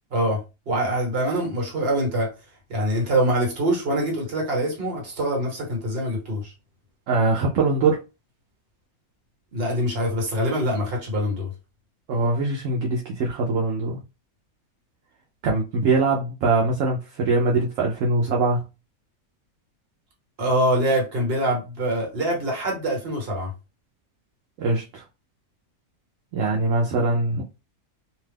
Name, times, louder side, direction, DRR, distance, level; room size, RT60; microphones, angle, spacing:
voice 1, 0.7-2.3 2.7-6.5 9.5-11.5 20.4-23.5, right 1 dB, 45° right, 1.2 m, -24 dB
voice 2, 7.1-8.0 12.1-14.0 15.4-18.6 24.6-25.0 26.3-27.4, right 3 dB, 70° right, 0.9 m, -22 dB
2.7 x 2.3 x 3.3 m
omnidirectional pair, 1.6 m